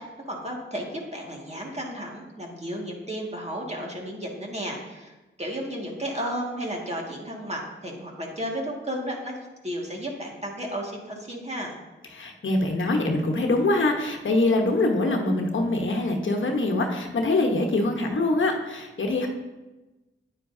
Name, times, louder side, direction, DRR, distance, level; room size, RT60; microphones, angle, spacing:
voice 1, 0.0-5.1 5.4-9.4 9.6-11.8, equal, 30° right, -1 dB, 1.9 m, -33 dB
voice 2, 12.1-19.3, left 2 dB, 70° left, 2 dB, 1.1 m, -24 dB
9.5 x 9.2 x 2.7 m, 1.1 s
cardioid pair, 65°, 21 cm